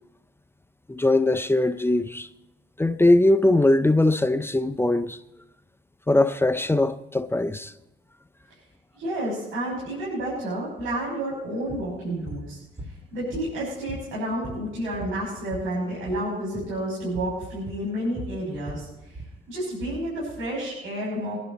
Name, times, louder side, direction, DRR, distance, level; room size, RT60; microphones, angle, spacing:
voice 1, 0.9-2.3 2.8-5.2 6.1-7.7, left 2 dB, 10° left, 0.6 m, -21 dB
voice 2, 8.9-19.2 19.5-21.3, right 1 dB, 90° right, 6.2 m, -30 dB
sound 1, 11.7-11.9 12.3-12.5 12.8-13.6 13.9-15.7 16.0-16.3 16.5-16.7 17.2-17.4 17.7-19.4, right 1 dB, 10° right, 2.4 m, -39 dB
23.5 x 11.0 x 4.2 m
cardioid pair, 90°, 20 cm